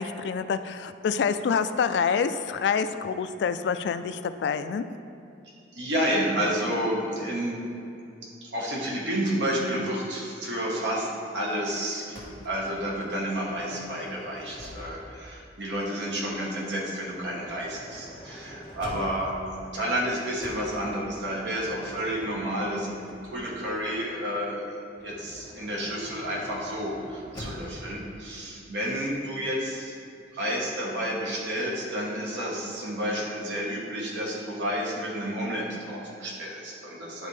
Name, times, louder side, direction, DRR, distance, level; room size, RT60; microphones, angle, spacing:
voice 1, 0.0-4.9, left 6 dB, 70° left, 11 dB, 0.3 m, -27 dB
voice 2, 5.7-7.6 8.4-11.1 11.3-29.9 30.3-37.3, equal, 75° right, -3 dB, 1.3 m, -30 dB
Motor vehicle (road) / Sliding door, 12.1-15.2 16.2-19.5 20.4-23.7 24.9-27.9, equal, 20° left, 1.4 m, -45 dB
10.5 x 4.1 x 3.2 m, 2.7 s
head